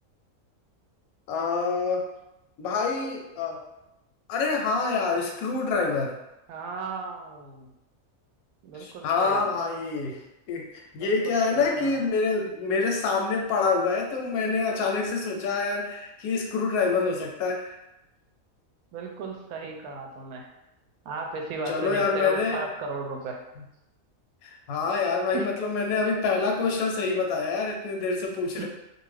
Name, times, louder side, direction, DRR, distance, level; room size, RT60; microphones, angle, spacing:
voice 1, 1.3-2.0 2.6-3.6 4.3-6.2 8.8-10.2 10.5-17.7 21.7-22.7 24.4-28.7, left 4 dB, 85° left, 1 dB, 1.1 m, -26 dB
voice 2, 6.5-7.7 8.6-9.5 11.0-12.0 18.9-20.5 21.0-23.4 25.3-25.5 27.4-27.5 28.6-28.7, right 3 dB, 90° right, 2 dB, 1.1 m, -36 dB
2.6 x 2.4 x 3.2 m, 0.91 s
omnidirectional pair, 1.5 m